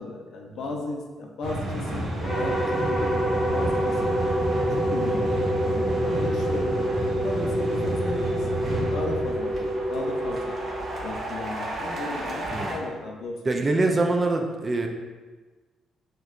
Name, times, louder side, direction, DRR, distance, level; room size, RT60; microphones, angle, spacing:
voice 1, 0.0-4.1 4.6-6.8 7.1-10.6 11.0-13.6, left 3 dB, 70° left, 1 dB, 0.5 m, -35 dB
sound 1, 1.4-12.7, right 1 dB, 45° right, 0.8 m, -31 dB
sound 2, 2.2-11.5, right 1 dB, 15° left, 1.0 m, -27 dB
voice 2, 13.5-14.9, right 2 dB, 25° right, 3 dB, 0.3 m, -24 dB
4.3 x 2.3 x 2.4 m, 1.3 s
cardioid pair, 110°, 0 cm